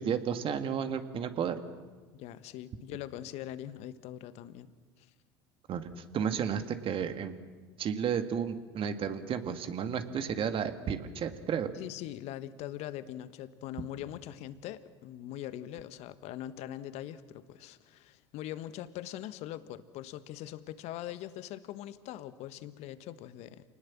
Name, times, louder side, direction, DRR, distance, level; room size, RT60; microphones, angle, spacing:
voice 1, 0.0-1.6 5.7-7.3 7.8-11.7, right 7 dB, 45° right, 8 dB, 2.2 m, -32 dB
voice 2, 2.1-4.7 5.0-5.1 11.7-23.6, left 12 dB, 55° left, 13 dB, 1.4 m, -42 dB
28.5 x 20.0 x 7.4 m, 1.3 s
hypercardioid pair, 70°, 13 cm